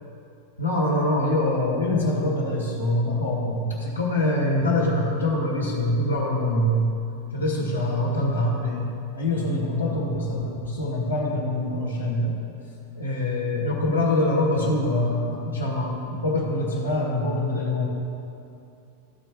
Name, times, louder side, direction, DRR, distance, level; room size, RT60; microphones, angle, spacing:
voice 1, 0.6-6.9 7.3-12.4 12.9-17.9, left 1 dB, 85° left, -6 dB, 1.8 m, -24 dB
13.5 x 4.5 x 7.3 m, 2.6 s
figure-of-eight pair, 90°, 0 cm